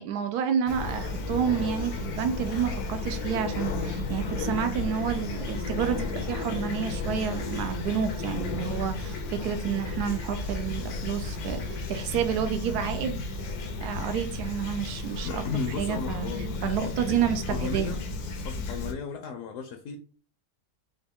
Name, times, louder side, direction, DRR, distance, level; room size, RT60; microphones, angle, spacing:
voice 1, 0.0-13.2 13.8-15.5 15.8-16.3 16.6-18.0, right 8 dB, 85° right, 9 dB, 1.1 m, -29 dB
Fowl / Chirp tweet, 0.7-18.9, left 3 dB, 85° left, 1.2 m, -33 dB
voice 2, 15.2-17.2 17.5-18.0 18.4-20.0, left 5 dB, 65° left, 6 dB, 0.9 m, -35 dB
5.1 x 2.3 x 3.5 m, 0.41 s
omnidirectional pair, 1.6 m